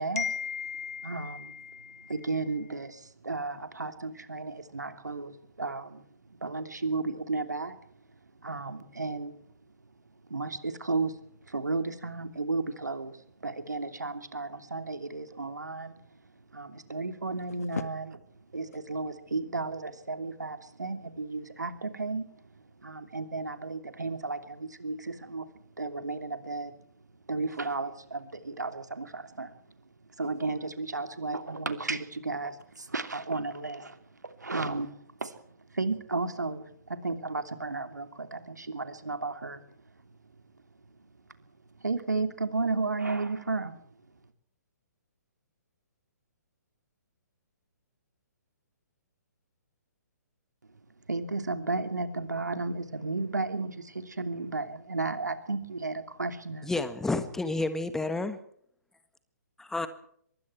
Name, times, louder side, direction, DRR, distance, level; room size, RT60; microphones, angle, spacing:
voice 1, 0.2-2.7 17.5-17.8, left 6 dB, 60° left, 14 dB, 1.8 m, -37 dB
voice 2, 1.0-1.5 2.1-6.0 6.4-7.8 8.4-9.4 10.3-11.2 11.5-16.0 16.5-18.0 18.5-22.2 22.8-25.5 25.8-26.7 27.3-29.5 30.2-34.9 35.2-35.3 35.7-39.6 41.8-43.7 51.1-56.7, right 3 dB, 75° right, 9 dB, 3.0 m, -33 dB
voice 3, 56.6-58.4 59.6-59.9, left 2 dB, 5° left, 11 dB, 1.5 m, -30 dB
24.5 x 22.5 x 4.6 m, 0.65 s
figure-of-eight pair, 130°, 10 cm